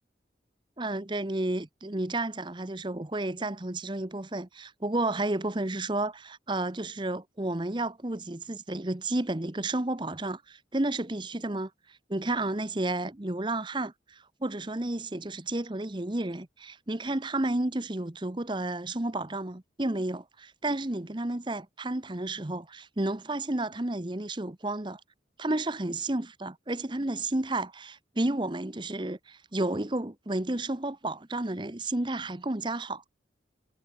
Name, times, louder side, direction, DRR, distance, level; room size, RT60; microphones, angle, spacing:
voice 1, 0.8-11.7 12.1-25.0 25.4-33.0, right 2 dB, 25° right, 1.0 m, -31 dB
head